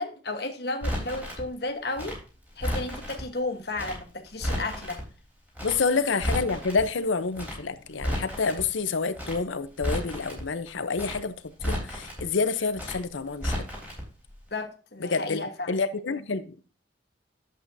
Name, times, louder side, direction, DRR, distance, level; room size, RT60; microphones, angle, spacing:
voice 1, 0.0-2.2 2.6-5.0 14.5-15.7, left 2 dB, 55° left, 1.2 m, -33 dB
Crackle, 0.8-1.4 1.9-3.2 3.7-4.0 4.3-5.0 5.5-5.8 6.1-6.8 7.3-7.6 7.9-8.6 9.1-9.4 9.7-10.4 10.9-11.2 11.5-12.2 12.7-13.0 13.3-14.0 14.3-14.4, equal, 10° right, 3.5 m, -32 dB
voice 2, 5.6-11.3 11.6-13.7 15.0-15.4 15.7-16.6, left 4 dB, 90° left, 0.7 m, -28 dB
11.0 x 7.6 x 2.7 m
head